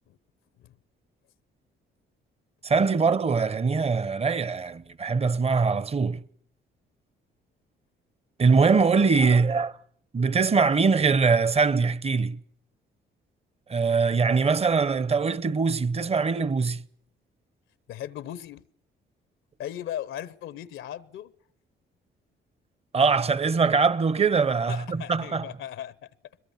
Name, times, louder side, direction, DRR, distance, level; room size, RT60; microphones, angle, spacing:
voice 1, 2.6-6.2 8.4-9.8 10.1-12.4 13.7-16.8 22.9-25.4, right 4 dB, 30° right, 0.8 m, -22 dB
voice 2, 17.9-18.6 19.6-21.3 24.7-26.1, left 11 dB, 85° left, 0.8 m, -37 dB
22.0 x 21.5 x 7.2 m
cardioid pair, 90°, 20 cm